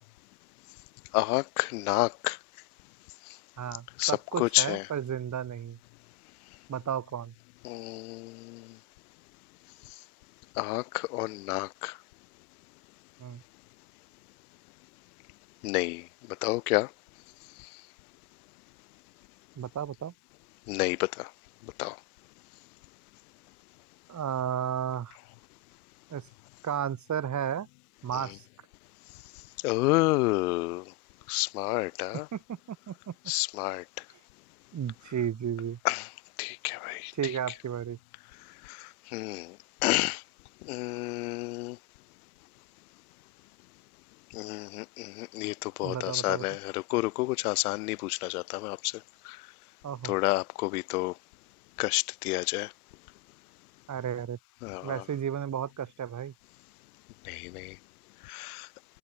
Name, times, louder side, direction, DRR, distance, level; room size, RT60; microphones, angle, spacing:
voice 1, 1.1-2.4 4.0-4.1 4.4-4.8 7.6-8.7 10.6-12.0 15.6-16.1 16.4-16.9 20.7-21.3 21.8-22.0 28.1-28.2 29.6-30.8 31.3-32.3 33.3-33.8 35.8-36.1 36.4-37.1 38.6-39.6 39.8-40.2 40.6-41.8 44.3-49.0 49.2-49.4 50.0-51.1 51.8-52.7 54.6-55.0 57.2-57.8 58.2-58.7, left 22 dB, 65° left, 0.8 m, -29 dB
voice 2, 3.6-5.8 6.7-7.3 13.2-13.4 19.6-20.1 24.1-25.2 26.1-26.3 26.6-27.7 28.0-28.4 32.3-33.1 34.7-35.8 37.2-38.0 45.8-46.5 49.8-50.1 53.9-54.4 54.8-56.3, right 9 dB, 35° right, 3.9 m, -33 dB
figure-of-eight pair, 60°, 50 cm